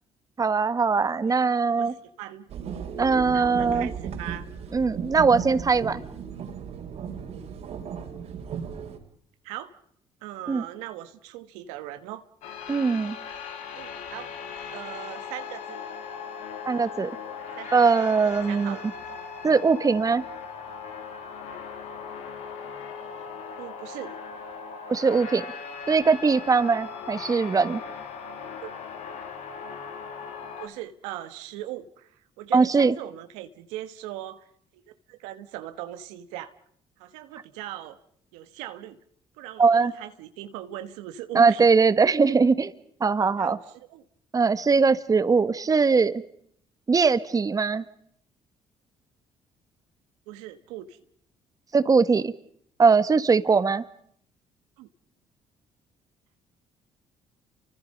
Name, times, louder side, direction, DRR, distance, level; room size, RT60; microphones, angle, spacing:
voice 1, 0.4-1.9 3.0-3.9 4.7-6.0 10.5-10.6 12.7-13.2 16.6-17.1 17.7-18.8 19.4-20.2 24.9-25.4 25.9-27.8 32.5-32.9 39.6-39.9 41.3-42.7 43.0-43.6 44.3-46.2 46.9-47.8 51.7-52.3 52.8-53.8, right 4 dB, 30° right, 13 dB, 1.5 m, -21 dB
voice 2, 1.8-2.4 3.0-3.1 3.3-4.4 9.4-9.7 10.2-12.2 13.8-14.3 14.7-15.8 17.6-17.9 18.5-18.9 23.6-24.2 28.6-28.7 30.6-34.5 34.7-34.8 35.1-36.5 37.0-38.0 38.3-39.0 39.4-41.7 43.4-43.6 43.9-44.0 50.3-51.0 54.8-54.9, right 13 dB, 90° right, 10 dB, 1.4 m, -39 dB
sound 1, 2.5-9.0, right 7 dB, 70° right, 4.0 m, -35 dB
sound 2, 12.4-30.7, left 6 dB, 80° left, 2.9 m, -39 dB
29.5 x 25.0 x 5.4 m, 0.67 s
supercardioid pair, 70°, 11 cm